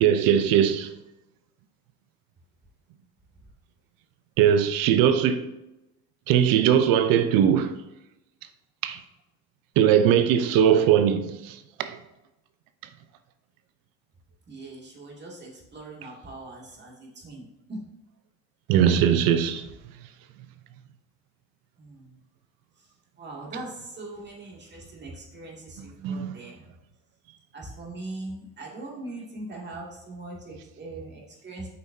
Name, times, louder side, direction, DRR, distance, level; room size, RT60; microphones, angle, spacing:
voice 1, 0.0-0.9 4.4-5.4 6.3-7.8 8.8-9.0 9.8-12.0 18.7-19.7 25.8-26.4, right 9 dB, 75° right, 0.8 m, -20 dB
voice 2, 14.5-17.4 17.7-17.8 21.8-22.0 23.2-26.5 27.5-31.7, right 2 dB, 30° right, 2.5 m, -40 dB
7.9 x 5.7 x 2.8 m
supercardioid pair, 100°, 35 cm